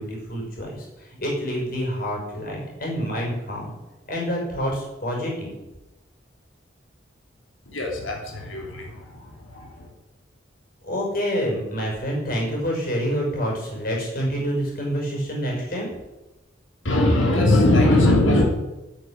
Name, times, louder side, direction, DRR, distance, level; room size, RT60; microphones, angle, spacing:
voice 1, 0.0-3.7 4.1-5.5 10.8-15.9, equal, 45° left, -1 dB, 6.2 m, -27 dB
voice 2, 7.7-8.2 8.5-8.8 16.8-18.4, left 1 dB, 80° left, 0 dB, 3.1 m, -18 dB
10.5 x 9.7 x 9.9 m, 1.0 s
head